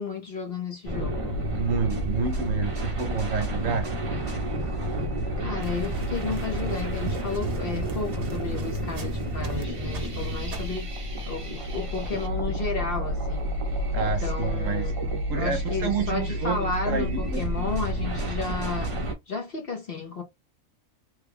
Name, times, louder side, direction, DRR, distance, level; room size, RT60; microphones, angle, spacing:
voice 1, 0.0-1.4 5.4-15.0 15.3-18.9 19.3-20.2, left 4 dB, 50° left, 0.9 m, -33 dB
sound 1, 0.8-19.1, right 1 dB, 30° right, 0.6 m, -30 dB
voice 2, 1.5-3.9 13.9-14.9 15.3-17.4, right 5 dB, 70° right, 1.1 m, -29 dB
sound 2, 5.6-9.6 9.9-10.8, right 5 dB, 45° right, 1.0 m, -39 dB
3.3 x 2.3 x 3.4 m
omnidirectional pair, 1.5 m